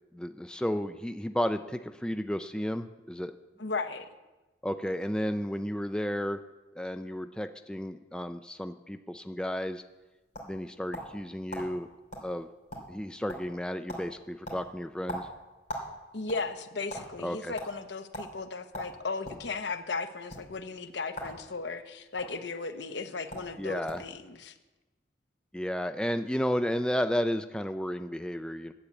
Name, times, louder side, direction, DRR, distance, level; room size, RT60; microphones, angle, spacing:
voice 1, 0.1-3.4 4.6-6.4 6.8-9.8 10.5-11.9 12.2-12.5 12.9-15.3 17.2-17.5 23.6-24.0 25.5-28.7, equal, 5° left, 8 dB, 0.3 m, -32 dB
voice 2, 3.6-4.1 16.1-24.5, left 4 dB, 75° left, 9 dB, 0.9 m, -36 dB
sound 1, 9.9-11.2 11.5-11.7 12.1-12.3 12.6-13.0 13.3-13.6 13.9-14.1 14.4-15.9 16.2-17.0 17.6-17.7 18.1-18.3 18.7-19.4 20.2-20.4 21.1-21.4 21.7-22.2 23.0-23.1 23.3-23.5 23.9-24.1, right 1 dB, 40° left, 2.9 m, -39 dB
10.0 x 8.0 x 8.2 m, 1.1 s
head